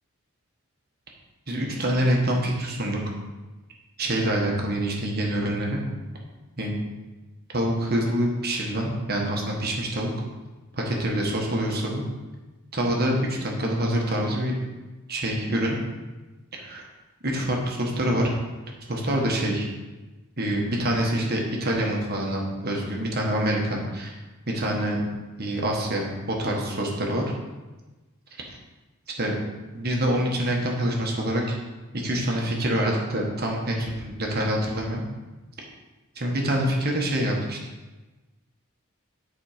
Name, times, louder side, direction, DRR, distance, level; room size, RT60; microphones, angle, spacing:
voice 1, 1.5-3.0 4.0-5.8 6.6-6.8 7.5-10.1 10.7-12.0 12.7-14.6 15.1-15.8 16.5-16.9 17.2-18.3 18.9-19.7 20.4-24.2 24.5-25.0 25.4-27.2 29.2-29.3 29.7-31.6 31.9-35.0 36.1-37.6, right 1 dB, 45° right, 0 dB, 1.5 m, -26 dB
10.5 x 4.3 x 5.1 m, 1.2 s
head